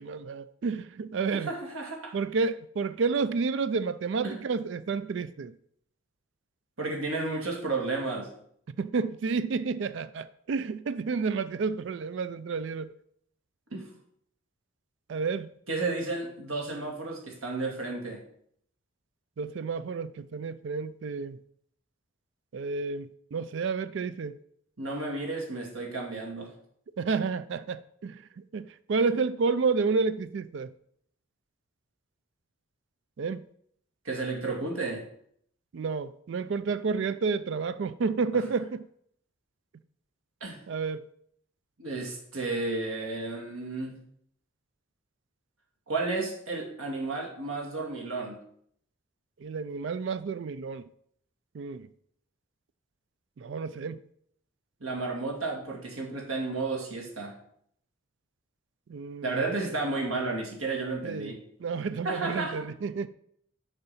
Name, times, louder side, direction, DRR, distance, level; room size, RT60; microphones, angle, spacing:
voice 1, 0.0-1.5 2.1-5.5 8.7-12.9 15.1-15.5 19.4-21.4 22.5-24.4 27.0-30.7 33.2-33.4 35.7-38.9 40.7-41.0 49.4-50.9 51.5-51.9 53.4-54.0 58.9-59.6 61.0-61.3 61.6-63.1, right 4 dB, 60° right, 0.4 m, -30 dB
voice 2, 1.3-2.1 4.2-4.4 6.8-8.3 13.7-13.9 15.7-18.2 24.8-26.5 34.0-35.0 40.4-40.6 41.8-44.0 45.9-48.4 54.8-57.4 59.2-61.4 62.0-62.6, right 3 dB, 85° right, 2.0 m, -32 dB
6.7 x 4.6 x 5.6 m
head